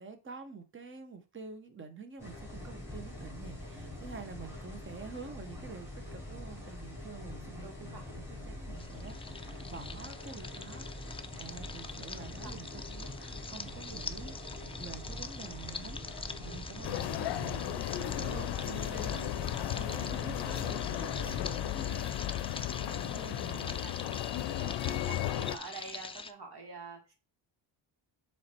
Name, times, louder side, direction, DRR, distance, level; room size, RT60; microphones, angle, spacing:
voice 1, 0.0-11.1 11.4-22.1 22.8-23.8, right 4 dB, 25° right, 8 dB, 1.1 m, -48 dB
sound 1, 2.2-21.5, left 1 dB, 5° right, 3.5 m, -44 dB
voice 2, 7.6-8.1 12.2-12.6 23.4-23.9 24.5-27.1, right 4 dB, 55° right, 2 dB, 2.4 m, -47 dB
sound 2, 8.8-26.3, left 4 dB, 15° left, 0.4 m, -45 dB
sound 3, 16.8-25.6, left 13 dB, 65° left, 0.6 m, -35 dB
7.2 x 3.4 x 4.5 m, 0.31 s
cardioid pair, 110°, 45 cm